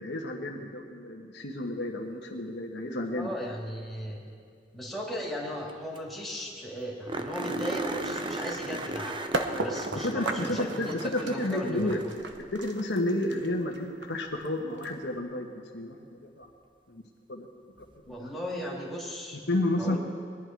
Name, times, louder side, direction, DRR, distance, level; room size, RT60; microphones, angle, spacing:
voice 1, 0.0-3.3 9.9-12.0 12.5-15.5 15.7-16.0 16.4-16.5 16.9-17.0 17.3-17.5 18.2-18.3 19.5-20.0, left 1 dB, 75° left, 1 dB, 1.3 m, -31 dB
voice 2, 3.1-4.2 4.7-12.1 18.1-19.4 19.8-20.0, equal, ahead, -5 dB, 2.8 m, -37 dB
sound 1, 5.7-5.8 6.0-6.1 6.4-6.5 7.1-12.5 14.8-14.9 17.8-17.9, right 2 dB, 30° right, 0.8 m, -36 dB
sound 2, 9.3-15.2, right 2 dB, 85° right, 1.0 m, -35 dB
21.5 x 10.5 x 4.7 m, 2.2 s
head